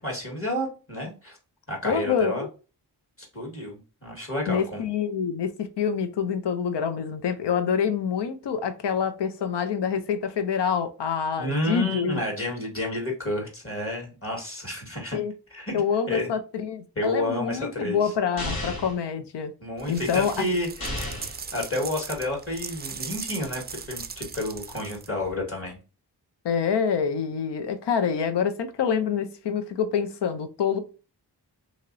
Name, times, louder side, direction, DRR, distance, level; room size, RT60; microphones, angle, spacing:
voice 1, 0.0-1.4 1.7-2.5 3.3-4.8 11.4-15.2 15.5-15.8 16.1-16.3 16.9-18.1 19.6-21.0 21.5-25.8, left 1 dB, 35° left, 1.6 m, -30 dB
voice 2, 1.8-2.5 4.5-12.2 15.1-15.3 15.7-19.5 19.9-20.4 26.4-30.8, left 7 dB, 85° left, 0.6 m, -26 dB
sound 1, 18.4-19.0 20.8-21.4, left 1 dB, 60° left, 1.5 m, -32 dB
sound 2, 19.8-25.3, right 5 dB, 25° right, 0.3 m, -38 dB
2.9 x 2.8 x 2.6 m
cardioid pair, 60°, 40 cm